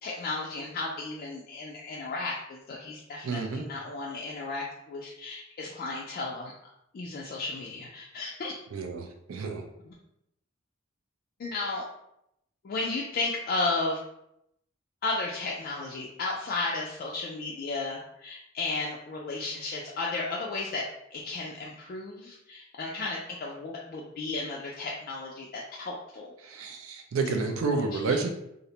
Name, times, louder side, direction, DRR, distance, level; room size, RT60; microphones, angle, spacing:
voice 1, 0.0-6.5 6.9-8.5 9.8-9.9 11.4-11.9 12.6-14.0 15.0-20.9 21.1-26.3 27.4-28.2, left 3 dB, 45° left, -3 dB, 0.3 m, -34 dB
voice 2, 3.2-3.6 8.7-9.6 26.4-28.3, right 4 dB, 85° right, 5 dB, 0.4 m, -30 dB
2.5 x 2.0 x 2.8 m, 0.80 s
head